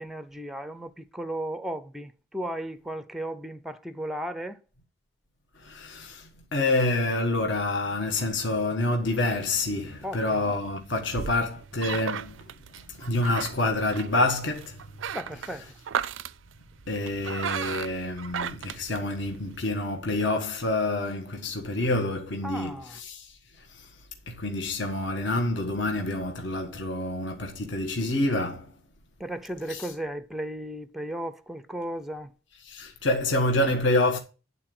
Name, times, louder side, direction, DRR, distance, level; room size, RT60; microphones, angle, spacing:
voice 1, 0.0-4.6 10.0-10.5 15.1-15.8 22.4-23.0 29.2-32.3, right 1 dB, ahead, 0.5 m, -35 dB
voice 2, 5.6-12.5 12.9-14.9 16.9-23.9 24.3-28.7 29.7-29.9 32.6-34.2, left 2 dB, 60° left, 1.4 m, -27 dB
sound 1, 9.3-19.6, right 8 dB, 70° right, 0.4 m, -36 dB
11.0 x 4.0 x 7.8 m
head